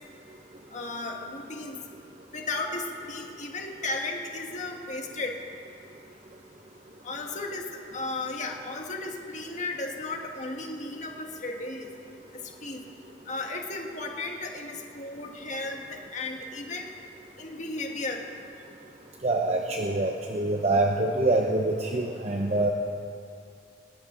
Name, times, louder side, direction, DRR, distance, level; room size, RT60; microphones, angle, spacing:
voice 1, 0.7-1.8 2.3-5.4 7.0-11.9 12.3-12.8 13.3-16.9 17.4-18.2, left 2 dB, 40° left, 2 dB, 1.7 m, -35 dB
voice 2, 19.2-22.7, right 2 dB, 35° right, 1 dB, 0.9 m, -25 dB
19.5 x 17.0 x 3.9 m, 2.4 s
head